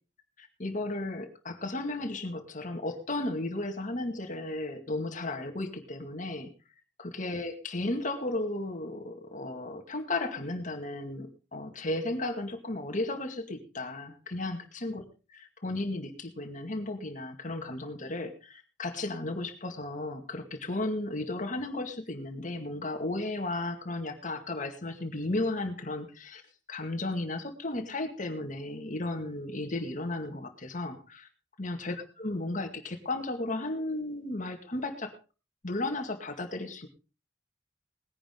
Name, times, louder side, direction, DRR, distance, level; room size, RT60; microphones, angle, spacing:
voice 1, 0.4-6.5 7.0-15.0 15.3-26.4 26.7-31.3 31.6-35.1 35.6-36.9, left 2 dB, 45° left, 6 dB, 2.1 m, -34 dB
19.5 x 10.0 x 3.8 m, 0.33 s
head